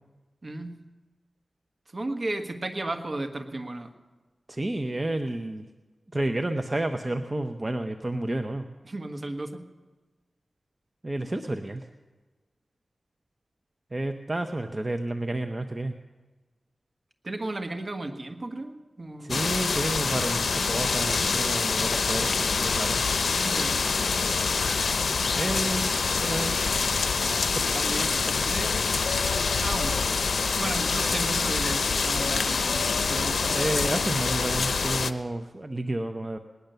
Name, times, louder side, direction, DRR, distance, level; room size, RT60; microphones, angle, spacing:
voice 1, 0.4-0.8 1.9-3.9 8.8-9.7 17.2-19.4 23.4-23.9 27.2-27.4 27.7-28.7 29.6-30.0 30.5-33.7, right 2 dB, 50° right, 6 dB, 1.4 m, -34 dB
voice 2, 4.5-5.6 6.1-8.6 11.0-11.8 13.9-15.9 19.2-23.0 25.3-26.5 27.5-27.8 33.5-36.4, right 1 dB, 30° right, 6 dB, 0.8 m, -30 dB
sound 1, 19.3-35.1, left 4 dB, 80° left, 0.6 m, -26 dB
19.0 x 10.5 x 6.8 m, 1.2 s
cardioid pair, 50°, 0 cm